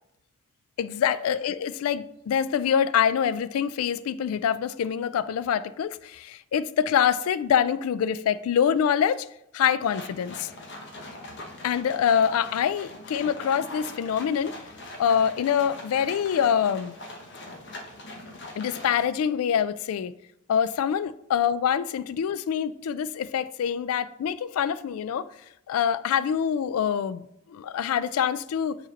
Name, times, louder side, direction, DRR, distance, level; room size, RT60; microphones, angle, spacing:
voice 1, 0.8-9.3 9.5-10.5 11.6-14.5 15.0-17.0 18.6-20.1 20.5-25.3 25.7-28.8, left 8 dB, 85° left, 0.3 m, -25 dB
sound 1, 9.8-19.1, left 1 dB, 55° left, 1.0 m, -42 dB
5.0 x 4.2 x 5.2 m
head